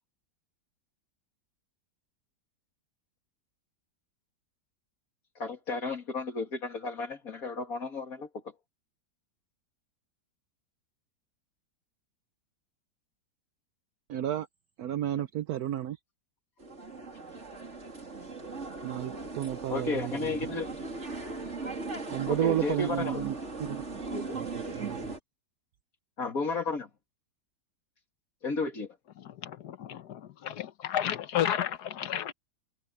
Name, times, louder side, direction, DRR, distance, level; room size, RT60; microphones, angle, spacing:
voice 1, 5.4-8.3 19.7-20.7 22.3-23.2 24.1-24.4 26.2-26.9 28.4-28.9, left 4 dB, 50° left, 2.9 m, -33 dB
voice 2, 14.1-14.5 14.8-16.0 18.8-20.4 22.1-24.0 24.3-25.1, right 12 dB, 65° right, 1.1 m, -32 dB
sound 1, 16.6-25.2, right 3 dB, 40° right, 3.4 m, -39 dB
voice 3, 29.2-32.3, left 10 dB, 70° left, 1.4 m, -32 dB
omnidirectional pair, 1.9 m